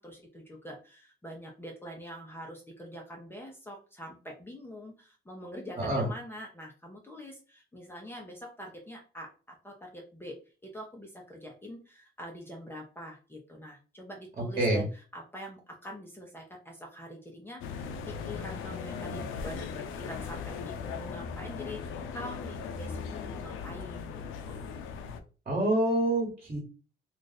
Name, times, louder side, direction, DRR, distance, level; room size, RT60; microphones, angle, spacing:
voice 1, 0.0-10.4 10.6-19.7 20.0-24.7, equal, 10° left, -1 dB, 0.8 m, -45 dB
voice 2, 5.8-6.1 14.6-14.8 25.4-26.6, right 1 dB, 35° right, -1 dB, 1.4 m, -26 dB
sound 1, 17.6-25.2, left 6 dB, 85° left, 0.5 m, -38 dB
2.5 x 2.5 x 4.0 m, 0.35 s
cardioid pair, 90°, 20 cm